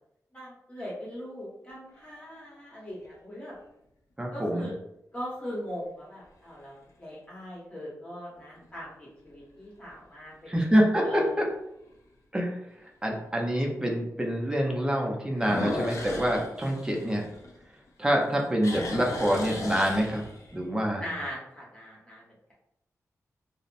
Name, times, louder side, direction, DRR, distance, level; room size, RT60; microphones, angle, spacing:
voice 1, 0.3-3.5 4.3-4.8 5.1-10.5 11.0-11.4 21.0-22.5, equal, 20° left, -6 dB, 1.1 m, -40 dB
sound 1, 1.7-2.4 3.0-3.1 8.4-8.8 9.3-9.4 10.0-10.1 10.3-10.4 11.9-12.0 15.3-17.9 18.2-20.6, left 2 dB, 70° left, 0.5 m, -36 dB
voice 2, 4.2-4.7 10.5-11.2 12.3-12.6 13.0-17.2 18.0-20.2 20.5-21.1, equal, 15° right, 0 dB, 0.5 m, -26 dB
2.8 x 2.0 x 2.5 m, 0.80 s
wide cardioid pair, 115°, 6 cm